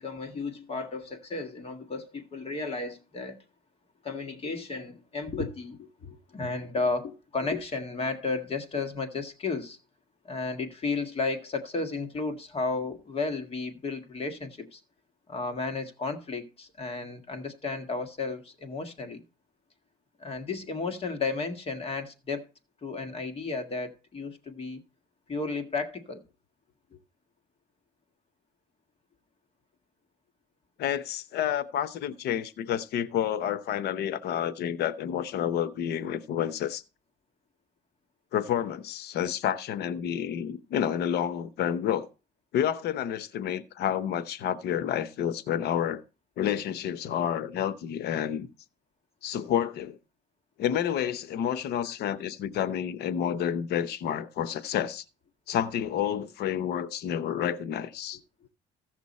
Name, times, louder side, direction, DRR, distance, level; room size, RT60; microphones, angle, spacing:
voice 1, 0.0-3.4 4.0-9.8 10.2-14.8 15.3-19.2 20.2-22.4 22.8-24.8 25.3-26.2, left 3 dB, 35° left, 1.7 m, -33 dB
voice 2, 30.8-36.8 38.3-42.1 42.5-46.0 46.4-48.5 49.2-50.0 50.6-55.0 55.5-58.2, left 9 dB, 75° left, 0.8 m, -29 dB
15.5 x 6.1 x 4.2 m
cardioid pair, 110°, 17 cm